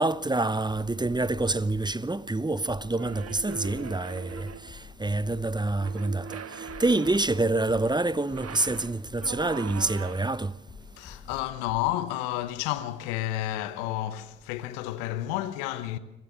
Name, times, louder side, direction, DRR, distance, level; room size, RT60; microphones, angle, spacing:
voice 1, 0.0-10.5, right 2 dB, 15° right, 0.8 m, -27 dB
sound 1, 0.7-2.0 2.7-4.0 4.3-6.0 6.7-8.0 8.3-10.0 10.7-12.0, left 6 dB, 60° left, 3.2 m, -47 dB
sound 2, 3.0-4.8 5.8-7.6 8.2-10.5, right 6 dB, 50° right, 1.4 m, -41 dB
voice 2, 11.0-16.0, left 14 dB, 80° left, 1.0 m, -31 dB
26.0 x 15.0 x 6.7 m
hypercardioid pair, 40°, 32 cm